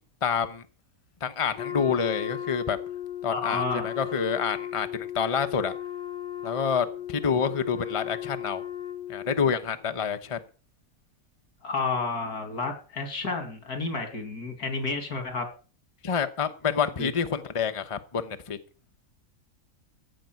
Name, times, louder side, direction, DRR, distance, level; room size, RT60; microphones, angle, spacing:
voice 1, 0.2-0.6 1.2-2.8 3.2-5.8 6.4-8.6 9.1-10.4 16.0-18.6, left 6 dB, 25° left, 0.9 m, -28 dB
Wind instrument woodwind instrument, 1.6-9.5, left 11 dB, 50° left, 1.2 m, -36 dB
voice 2, 3.3-3.9 11.6-15.5 17.0-17.1, left 4 dB, 90° left, 3.1 m, -31 dB
15.0 x 5.6 x 9.4 m
omnidirectional pair, 1.6 m